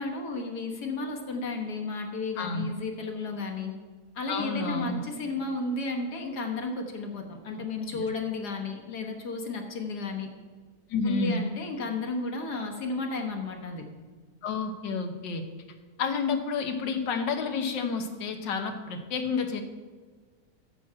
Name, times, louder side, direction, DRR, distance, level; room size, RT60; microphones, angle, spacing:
voice 1, 0.0-3.7 4.2-10.3 11.0-13.8, left 3 dB, 65° left, 2 dB, 1.7 m, -33 dB
voice 2, 2.4-2.7 4.3-5.0 7.5-7.6 7.9-8.1 10.9-11.4 14.4-15.4 16.0-19.6, left 4 dB, 85° left, 6 dB, 1.7 m, -30 dB
9.3 x 6.2 x 7.4 m, 1.5 s
omnidirectional pair, 1.9 m